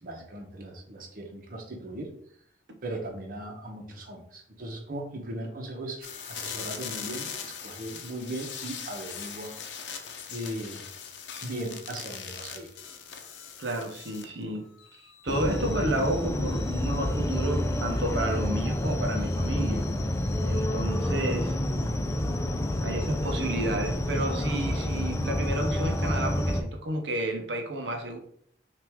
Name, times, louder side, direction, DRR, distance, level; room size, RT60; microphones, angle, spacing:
voice 1, 0.0-2.1 2.8-9.5 9.8-10.8 11.4-12.7, right 1 dB, 50° right, 1 dB, 0.9 m, -38 dB
sound 1, 6.0-14.4 14.8-20.8, left 7 dB, 80° left, 0.6 m, -42 dB
voice 2, 13.6-14.7 15.2-19.9 20.4-21.6 22.8-28.2, right 1 dB, 75° right, 4 dB, 0.7 m, -31 dB
sound 2, 15.3-26.6, left 1 dB, 15° left, 0.4 m, -28 dB
5.9 x 2.6 x 3.5 m, 0.65 s
head